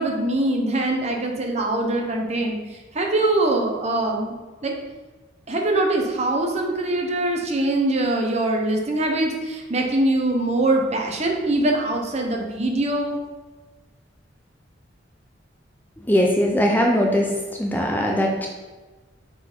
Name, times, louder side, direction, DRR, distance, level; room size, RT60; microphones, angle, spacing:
voice 1, 0.0-2.6 2.9-4.3 4.6-4.7 5.5-13.2, right 2 dB, 35° right, 1 dB, 0.9 m, -23 dB
voice 2, 16.1-17.3 17.6-18.5, equal, 10° left, 0 dB, 0.6 m, -20 dB
6.1 x 4.0 x 4.5 m, 1.3 s
head